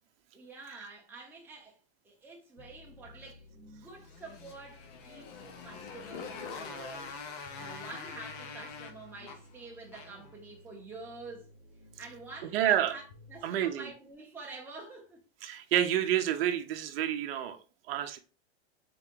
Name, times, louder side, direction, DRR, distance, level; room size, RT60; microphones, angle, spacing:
voice 1, 0.3-1.8 2.0-7.2 7.5-11.5 12.0-15.2, right 3 dB, 5° right, 0.8 m, -48 dB
sound 1, 2.6-13.4, left 2 dB, 90° left, 1.0 m, -56 dB
Motorcycle, 4.0-10.3, left 5 dB, 35° left, 0.7 m, -44 dB
voice 2, 12.5-13.0 13.4-13.9 15.4-17.6 17.9-18.2, right 11 dB, 55° right, 0.7 m, -29 dB
3.8 x 3.4 x 3.7 m
supercardioid pair, 160°, 34 cm